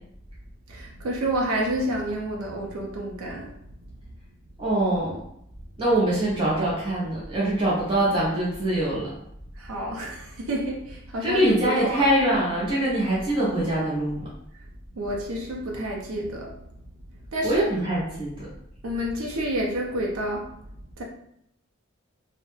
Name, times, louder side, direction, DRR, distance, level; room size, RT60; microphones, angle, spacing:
voice 1, 0.7-3.5 9.6-12.0 15.0-16.5 17.3-17.6 18.8-20.5 21.0-21.1, right 1 dB, 85° right, -1 dB, 0.5 m, -29 dB
voice 2, 4.6-5.2 5.8-9.1 11.2-14.2 17.4-18.5, right 1 dB, 25° right, -7 dB, 0.6 m, -23 dB
2.2 x 2.0 x 3.0 m, 0.73 s
head